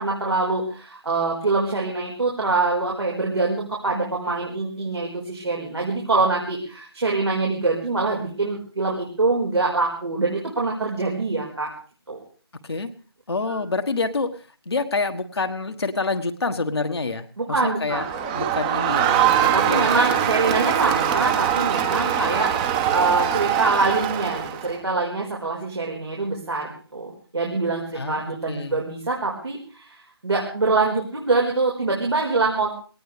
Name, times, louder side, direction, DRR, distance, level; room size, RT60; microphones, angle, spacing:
voice 1, 0.0-11.7 12.1-12.2 13.5-13.6 17.4-18.1 19.5-32.7, right 3 dB, 80° right, -2 dB, 5.0 m, -24 dB
voice 2, 13.3-19.9 27.9-28.8, left 3 dB, 70° left, 5 dB, 1.5 m, -27 dB
Crowd, 17.9-24.7, right 10 dB, 20° right, 1.2 m, -22 dB
21.0 x 18.5 x 3.4 m, 0.39 s
figure-of-eight pair, 150°, 14 cm